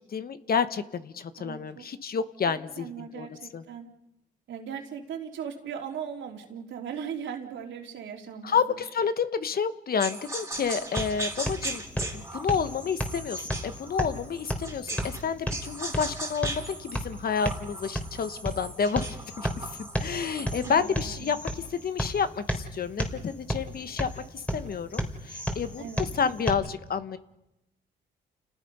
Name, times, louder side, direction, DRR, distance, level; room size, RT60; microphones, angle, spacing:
voice 1, 0.1-3.3 3.5-3.6 8.4-11.8 12.1-19.5 19.8-27.2, left 6 dB, 50° left, 11 dB, 1.3 m, -30 dB
voice 2, 1.4-1.9 2.5-3.9 4.5-8.8 20.6-21.3 25.8-26.0, right 7 dB, 70° right, 2 dB, 3.5 m, -38 dB
sound 1, 10.0-15.2 15.5-20.8, right 2 dB, 15° right, 3.1 m, -38 dB
sound 2, 10.5-26.5, equal, 5° left, 3.5 m, -34 dB
29.5 x 18.5 x 5.5 m, 0.90 s
cardioid pair, 90°, 20 cm